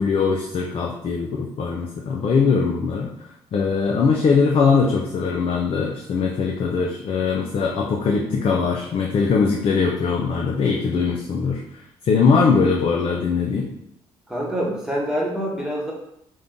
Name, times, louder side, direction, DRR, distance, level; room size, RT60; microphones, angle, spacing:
voice 1, 0.0-3.1 3.5-13.7, left 5 dB, 55° left, 0 dB, 0.4 m, -21 dB
voice 2, 14.3-15.9, equal, 5° right, -3 dB, 1.1 m, -25 dB
2.6 x 2.3 x 3.6 m, 0.77 s
hypercardioid pair, 55°, 11 cm